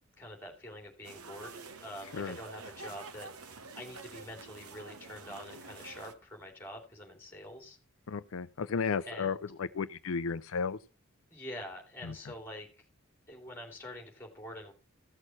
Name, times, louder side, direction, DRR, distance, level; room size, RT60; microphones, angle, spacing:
voice 1, 0.2-3.3 3.7-7.8 9.0-9.4 11.3-12.7 13.3-14.7, left 1 dB, 10° left, 2.9 m, -46 dB
sound 1, 1.0-6.1, right 3 dB, 90° right, 1.2 m, -48 dB
voice 2, 8.1-10.8 12.0-12.1, left 5 dB, 70° left, 0.5 m, -34 dB
15.0 x 6.4 x 5.6 m
head